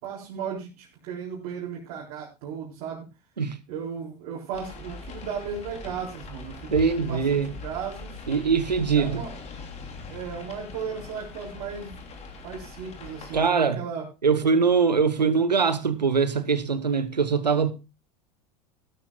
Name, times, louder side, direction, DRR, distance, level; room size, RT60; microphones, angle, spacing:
voice 1, 0.0-3.1 3.7-8.2 8.9-9.3 10.1-12.0 12.4-14.0, right 6 dB, 50° right, 4.0 m, -35 dB
sound 1, 4.5-13.5, left 3 dB, 30° left, 3.0 m, -41 dB
voice 2, 6.7-7.5 8.3-9.2 13.3-13.8 14.2-17.7, right 5 dB, 85° right, 1.1 m, -22 dB
15.5 x 13.0 x 2.3 m
figure-of-eight pair, 80°, 21 cm